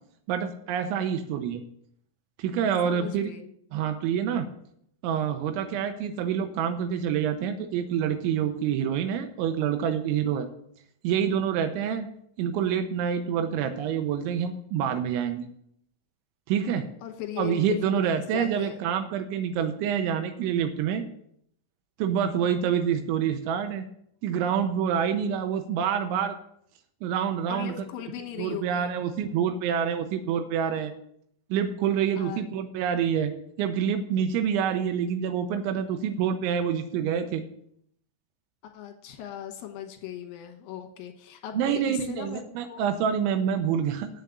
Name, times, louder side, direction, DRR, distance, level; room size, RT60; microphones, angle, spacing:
voice 1, 0.3-1.6 2.4-3.3 3.7-4.5 5.0-10.5 11.0-12.1 12.4-15.5 16.5-16.9 17.4-21.0 22.0-23.9 24.2-26.4 27.0-27.8 28.4-30.9 31.5-33.3 33.6-37.4 41.5-44.1, right 8 dB, 85° right, 7 dB, 3.0 m, -27 dB
voice 2, 2.8-3.5 17.0-18.8 27.5-28.9 32.2-32.4 38.6-42.4 42.7-42.8, left 11 dB, 70° left, 3 dB, 2.3 m, -38 dB
8.3 x 6.6 x 8.0 m, 0.70 s
omnidirectional pair, 5.5 m